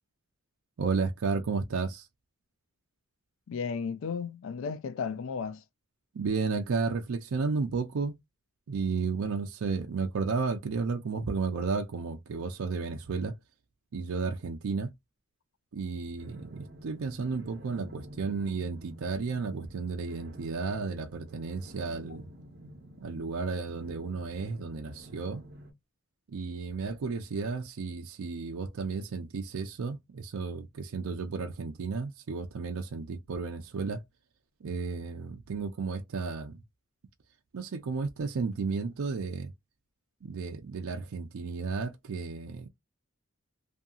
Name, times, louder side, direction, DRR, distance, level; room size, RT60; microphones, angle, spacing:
voice 1, 0.8-2.1 6.1-8.1 8.7-13.4 13.9-14.9 15.7-22.3 23.0-25.4 26.3-34.0 34.6-36.6 37.5-39.5 40.2-42.7, right 4 dB, 75° right, 0.5 m, -33 dB
voice 2, 3.5-5.6, left 5 dB, 65° left, 0.3 m, -34 dB
sound 1, 16.2-25.7, right 1 dB, 50° right, 0.9 m, -50 dB
2.7 x 2.6 x 2.3 m
head